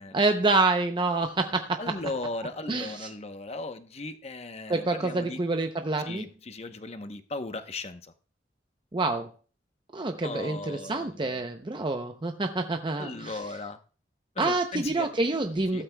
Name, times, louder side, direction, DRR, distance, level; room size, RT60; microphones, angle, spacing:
voice 1, 0.1-2.0 2.7-3.1 4.7-6.2 8.9-9.3 9.9-13.4 14.4-15.8, right 3 dB, 25° right, 5 dB, 0.6 m, -27 dB
voice 2, 1.8-5.4 6.0-8.1 10.2-11.3 13.0-13.8 14.4-15.1 15.7-15.8, left 2 dB, 35° left, 9 dB, 0.9 m, -37 dB
15.5 x 12.5 x 2.2 m, 0.39 s
head